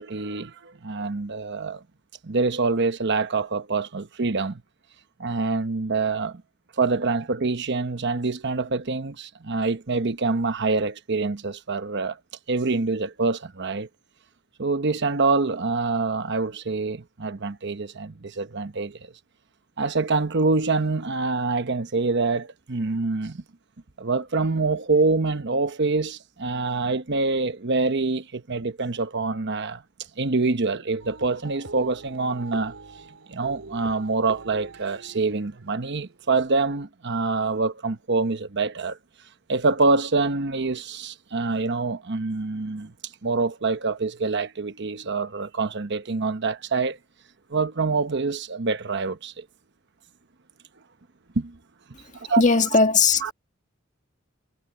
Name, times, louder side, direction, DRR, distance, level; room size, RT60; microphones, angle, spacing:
voice 1, 0.0-1.8 2.2-4.6 5.2-6.4 6.8-12.2 12.5-13.9 14.6-19.1 19.8-23.4 24.0-29.8 30.2-32.7 33.3-39.0 39.5-42.9 43.2-47.0 47.5-49.4 51.3-51.6 52.1-52.4 53.2-53.3, right 3 dB, 55° right, 1.0 m, -25 dB
sound 1, 31.0-36.8, right 3 dB, 90° right, 3.3 m, -44 dB
voice 2, 52.3-53.3, left 4 dB, 35° left, 1.6 m, -19 dB
head